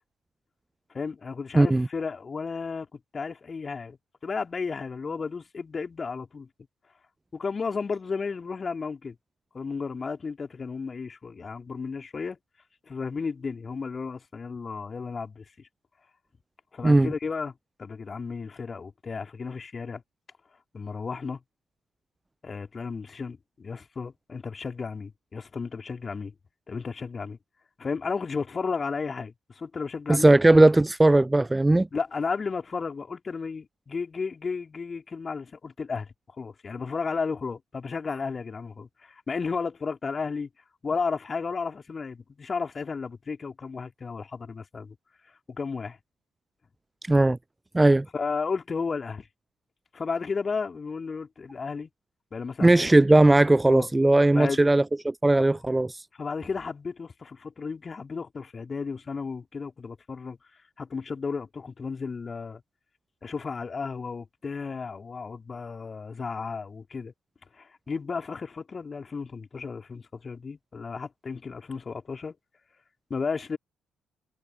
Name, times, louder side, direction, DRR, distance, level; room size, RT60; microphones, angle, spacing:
voice 1, 0.9-4.0 4.2-6.5 7.3-9.2 9.5-12.4 12.9-15.7 16.7-17.5 17.8-20.0 20.7-21.4 22.4-26.3 26.7-27.4 27.8-30.3 31.9-36.1 36.4-40.5 40.8-45.0 45.5-46.0 48.1-49.3 49.9-51.9 52.3-53.0 53.7-53.9 54.3-54.7 56.1-60.4 60.8-62.6 63.2-67.1 67.5-72.3 73.1-73.6, left 5 dB, 35° left, 3.9 m, -33 dB
voice 2, 1.5-1.9 16.8-17.1 30.1-31.9 47.1-47.4 47.7-48.1 52.6-56.0, right 2 dB, 15° right, 0.5 m, -18 dB
figure-of-eight pair, 45°, 0 cm